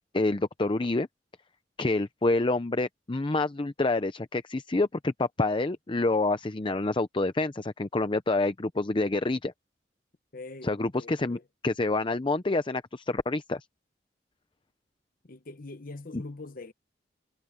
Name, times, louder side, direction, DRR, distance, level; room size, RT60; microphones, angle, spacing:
voice 1, 0.1-1.1 1.8-9.5 10.6-11.4 11.6-13.6, left 2 dB, 30° left, 0.6 m, -27 dB
voice 2, 10.3-11.5 15.2-16.7, left 2 dB, 50° left, 1.0 m, -43 dB
head